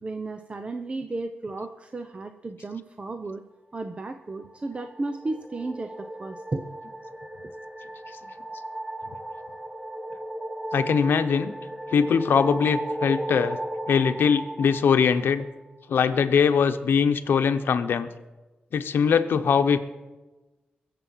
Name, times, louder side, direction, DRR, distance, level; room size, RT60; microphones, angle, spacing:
voice 1, 0.0-3.4 3.7-6.6, right 2 dB, 35° right, 8 dB, 0.8 m, -34 dB
sound 1, 4.4-15.8, right 1 dB, ahead, 1.1 m, -36 dB
voice 2, 10.7-11.5 11.9-13.6 13.9-15.4 15.9-18.1 18.7-19.8, left 6 dB, 80° left, 8 dB, 0.9 m, -21 dB
22.5 x 7.6 x 5.7 m, 1.1 s
cardioid pair, 90°, 4 cm